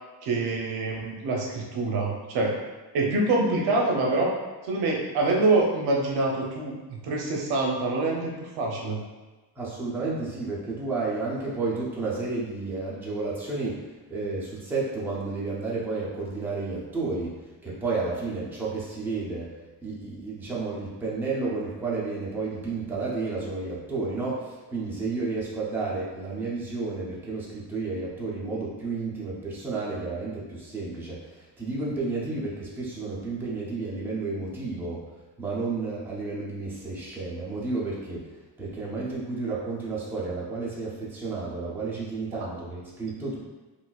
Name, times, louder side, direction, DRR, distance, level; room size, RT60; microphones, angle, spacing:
voice 1, 0.2-2.5 2.9-4.3 4.6-9.0, right 2 dB, 65° right, -1 dB, 0.6 m, -25 dB
voice 2, 9.6-19.5 19.8-35.0 35.4-38.3 38.6-43.4, right 3 dB, 5° right, -6 dB, 0.3 m, -31 dB
3.7 x 2.5 x 2.2 m, 1.2 s
cardioid pair, 175°, 41 cm